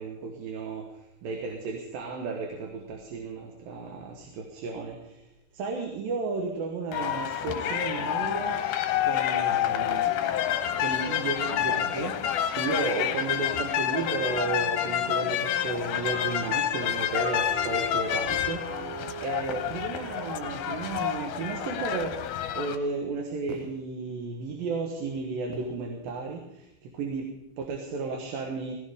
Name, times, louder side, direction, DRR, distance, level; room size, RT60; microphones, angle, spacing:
voice 1, 0.0-5.2 5.5-28.7, right 4 dB, 70° right, 3 dB, 2.9 m, -34 dB
sound 1, 6.9-22.8, left 10 dB, 70° left, 2.1 m, -28 dB
sound 2, 16.1-21.6, right 4 dB, 45° right, 5.2 m, -42 dB
19.0 x 16.0 x 3.6 m, 0.88 s
omnidirectional pair, 4.3 m